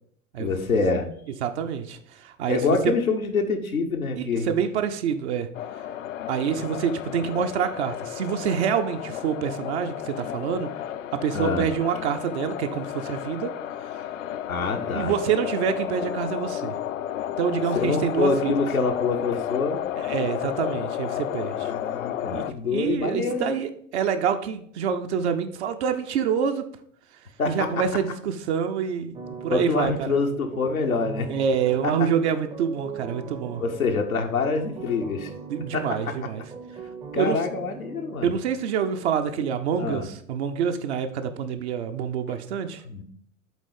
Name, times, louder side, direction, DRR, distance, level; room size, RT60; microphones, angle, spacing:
voice 1, 0.4-1.1 2.5-4.5 6.5-6.7 11.3-11.7 14.5-15.1 17.8-19.8 21.5-23.5 27.4-27.8 29.5-31.3 31.8-32.1 33.6-35.3 35.7-36.1 37.1-38.3 39.8-40.1 42.3-42.4 42.8-43.0, left 4 dB, 85° left, 2 dB, 0.9 m, -26 dB
voice 2, 1.4-2.6 4.2-5.5 6.3-10.7 11.1-13.5 14.9-16.7 17.4-18.5 20.0-21.7 22.3-26.6 27.5-29.2 29.4-30.2 31.3-33.6 35.5-36.4 37.1-37.4 38.2-42.8, right 7 dB, 55° right, 7 dB, 0.7 m, -26 dB
sound 1, 5.5-22.5, left 11 dB, 65° left, 0.5 m, -32 dB
sound 2, 29.1-38.2, right 5 dB, 15° right, 0.6 m, -40 dB
8.3 x 3.6 x 5.0 m, 0.65 s
figure-of-eight pair, 80°, 41 cm